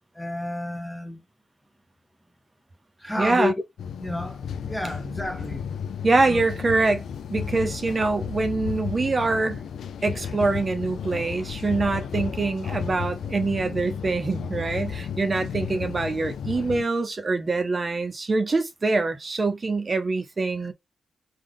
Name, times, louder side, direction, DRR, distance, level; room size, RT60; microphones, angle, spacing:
voice 1, 0.1-1.2 3.0-3.5 4.0-5.6 6.3-6.4, left 2 dB, 5° left, 0.6 m, -30 dB
voice 2, 3.2-3.5 6.0-7.0 7.3-9.6 10.0-20.7, right 3 dB, 35° right, 0.6 m, -24 dB
sound 1, 3.8-16.8, left 7 dB, 85° left, 0.3 m, -33 dB
3.7 x 2.3 x 3.3 m
cardioid pair, 110°, 0 cm